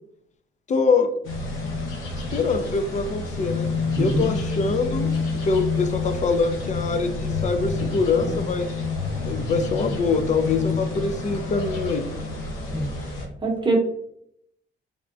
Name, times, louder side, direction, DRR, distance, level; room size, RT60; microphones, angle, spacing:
voice 1, 0.7-1.1 2.3-3.7 4.0-5.1 5.4-8.7 9.2-12.0, left 4 dB, 40° left, 8 dB, 0.4 m, -24 dB
sound 1, 1.2-13.3, left 3 dB, 90° left, 0.8 m, -28 dB
voice 2, 3.9-4.3 12.7-12.9 13.4-13.8, right 2 dB, 25° right, 1 dB, 0.8 m, -23 dB
3.5 x 2.1 x 2.4 m, 0.71 s
cardioid pair, 90°, 20 cm